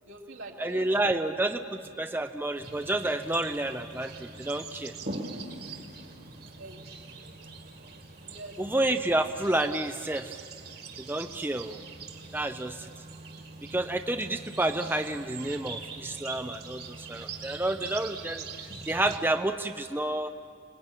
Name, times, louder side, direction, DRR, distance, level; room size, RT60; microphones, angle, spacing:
voice 1, 0.0-1.2 6.5-6.9 7.2-7.4 8.2-8.8, right 2 dB, 75° right, -1 dB, 3.3 m, -45 dB
voice 2, 0.6-4.9 8.6-10.4 11.0-11.8 12.3-12.9 13.7-18.5 18.9-20.3, right 1 dB, 10° right, 7 dB, 0.6 m, -29 dB
sound 1, 2.6-19.2, right 3 dB, 50° right, 2.2 m, -43 dB
29.5 x 20.5 x 9.0 m, 2.3 s
head